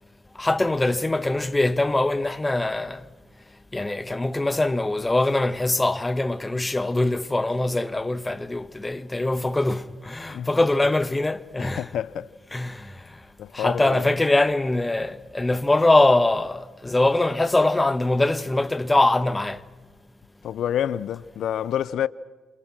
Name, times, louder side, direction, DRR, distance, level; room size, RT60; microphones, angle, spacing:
voice 1, 0.4-3.0 3.7-11.9 12.5-13.0 13.5-19.6, left 2 dB, 15° left, 1.4 m, -23 dB
voice 2, 11.6-12.3 13.4-14.1 20.4-22.1, left 10 dB, 75° left, 0.8 m, -28 dB
28.0 x 27.0 x 6.2 m
cardioid pair, 80°, 0 cm